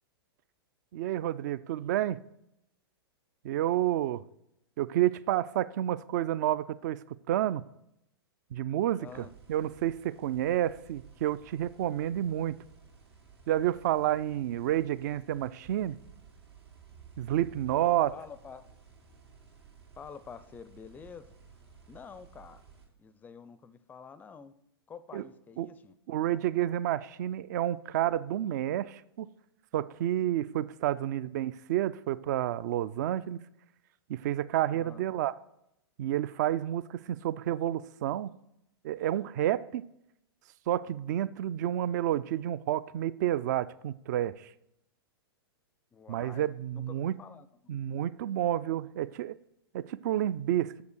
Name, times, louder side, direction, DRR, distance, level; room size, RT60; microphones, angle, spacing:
voice 1, 0.9-2.2 3.4-4.2 4.8-7.6 8.5-9.1 9.5-12.5 13.5-16.0 17.2-18.1 25.1-25.2 25.6-25.7 26.1-29.3 29.7-33.4 34.1-35.3 36.0-38.3 38.8-39.8 40.7-44.5 46.1-47.1 47.7-49.4 49.7-50.8, right 12 dB, 45° right, 0.4 m, -30 dB
voice 2, 9.0-9.3 18.1-18.6 20.0-21.3 21.9-22.6 23.0-24.6 24.9-25.9 34.7-35.1 45.9-47.7, left 6 dB, 15° left, 0.4 m, -48 dB
sound 1, 9.0-22.9, right 6 dB, 80° right, 2.4 m, -55 dB
7.1 x 6.6 x 6.4 m
figure-of-eight pair, 105°, 13 cm